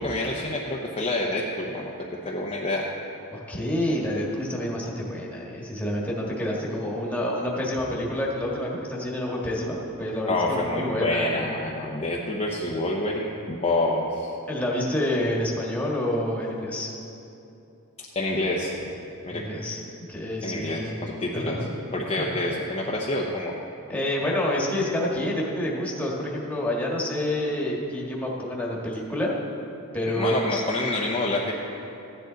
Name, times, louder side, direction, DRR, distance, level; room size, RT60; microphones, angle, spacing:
voice 1, 0.0-1.9 2.2-2.9 10.3-14.3 18.0-18.7 19.2-19.4 20.4-21.6 21.9-23.5 30.1-31.5, left 2 dB, 25° left, -3 dB, 0.8 m, -27 dB
voice 2, 3.3-11.4 14.5-16.9 19.3-19.8 20.1-21.0 21.3-21.7 22.1-22.3 23.9-29.3 29.9-30.6, left 1 dB, 5° left, -4 dB, 1.6 m, -28 dB
15.0 x 10.0 x 3.9 m, 2.8 s
head